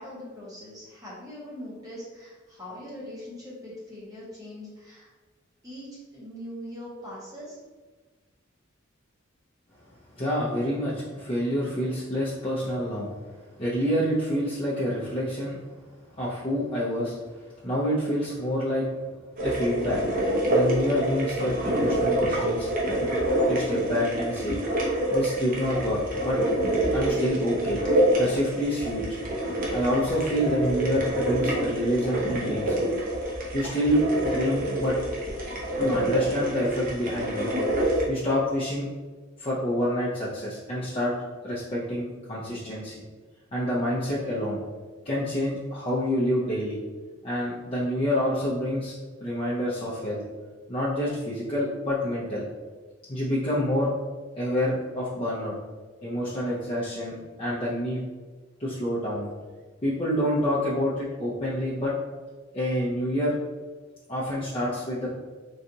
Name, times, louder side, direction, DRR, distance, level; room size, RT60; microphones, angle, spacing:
voice 1, 0.0-5.1 5.6-7.6, left 1 dB, 20° right, -7 dB, 0.8 m, -41 dB
voice 2, 10.2-13.1 13.6-15.6 16.2-17.2 17.6-18.9 19.4-20.0 20.5-22.7 23.0-23.1 23.5-24.6 25.1-26.4 26.9-27.8 28.2-29.0 29.7-32.8 33.5-35.0 35.8-37.5 38.1-38.9 39.4-41.1 41.4-43.0 43.5-44.6 45.0-46.8 47.2-48.9 49.2-50.2 50.7-52.5 53.1-53.9 54.4-55.5 56.0-58.0 58.6-59.3 59.8-61.9 62.5-63.4 64.1-65.1, equal, 30° left, -8 dB, 0.5 m, -27 dB
sound 1, 19.4-38.0, right 1 dB, 45° right, 0.7 m, -26 dB
3.9 x 2.3 x 2.7 m, 1.3 s
head